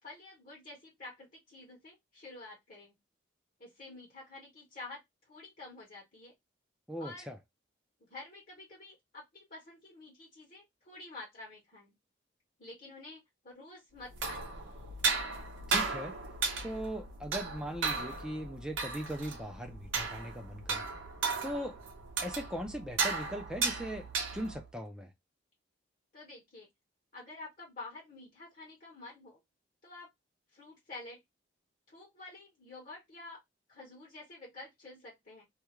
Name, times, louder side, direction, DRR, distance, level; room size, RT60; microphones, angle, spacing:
voice 1, 0.0-3.0 3.6-6.3 7.0-7.3 8.0-12.0 12.6-14.6 26.1-26.7 27.1-29.4 29.8-30.1 30.5-31.2 31.9-33.4 33.7-35.5, left 2 dB, 45° left, 1.0 m, -49 dB
voice 2, 6.9-7.4 15.7-16.2 16.6-20.8 21.4-21.8 22.2-25.1, equal, 5° right, 0.5 m, -39 dB
sound 1, 14.0-24.7, right 4 dB, 75° right, 0.6 m, -35 dB
2.4 x 2.4 x 3.0 m
head